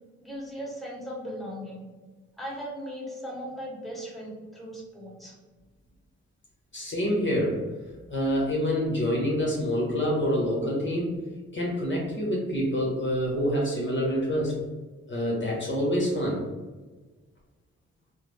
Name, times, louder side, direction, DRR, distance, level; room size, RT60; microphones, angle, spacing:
voice 1, 0.2-1.9 2.4-5.3, equal, ahead, -4 dB, 1.4 m, -38 dB
voice 2, 6.7-7.6 8.1-11.2 11.5-14.5 15.1-16.4, equal, 40° left, -4 dB, 1.1 m, -26 dB
3.5 x 2.1 x 3.2 m, 1.3 s
supercardioid pair, 50°, 30 cm